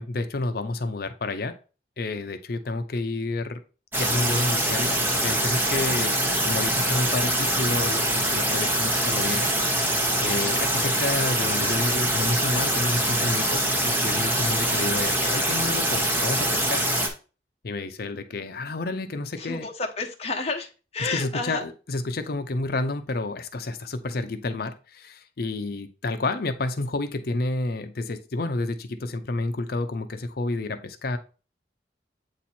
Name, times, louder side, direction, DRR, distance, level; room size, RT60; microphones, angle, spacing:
voice 1, 0.0-1.5 2.0-3.6 4.0-6.2 6.4-9.5 10.2-16.8 17.6-19.7 21.0-31.2, left 2 dB, 60° left, 9 dB, 0.6 m, -30 dB
sound 1, 3.9-17.1, right 1 dB, 10° right, 1.0 m, -24 dB
voice 2, 19.4-21.6, left 3 dB, 35° left, 2 dB, 1.0 m, -30 dB
8.2 x 3.0 x 4.3 m, 0.35 s
head